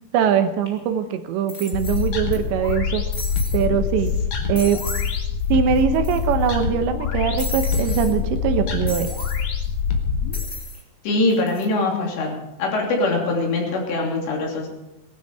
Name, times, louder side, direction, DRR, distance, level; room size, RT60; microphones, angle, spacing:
voice 1, 0.1-3.0 3.5-4.1 4.5-4.8 5.5-9.1, right 8 dB, 80° right, 8 dB, 3.2 m, -22 dB
sound 1, 0.7-0.8 1.5-2.4 2.6-2.7 3.1-3.6 4.1-4.2 4.5-5.1 5.4-5.5 5.7-6.5 7.4-8.1 8.9-9.4 10.3-10.8 11.3-11.6, left 2 dB, 20° left, 2.2 m, -34 dB
sound 2, 1.7-10.5, left 6 dB, 55° left, 2.3 m, -25 dB
voice 2, 11.0-14.7, left 2 dB, 70° left, 0 dB, 5.2 m, -23 dB
19.5 x 12.5 x 4.8 m, 0.99 s
omnidirectional pair, 5.2 m